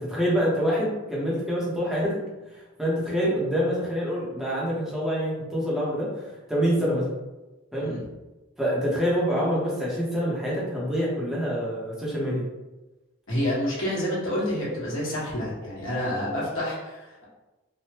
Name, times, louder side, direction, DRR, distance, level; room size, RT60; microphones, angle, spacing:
voice 1, 0.0-2.2 2.5-7.1 7.7-8.0 8.6-12.4, equal, ahead, -7 dB, 0.8 m, -26 dB
voice 2, 13.3-17.2, equal, 70° left, -7 dB, 1.3 m, -28 dB
3.3 x 2.1 x 2.8 m, 1.1 s
head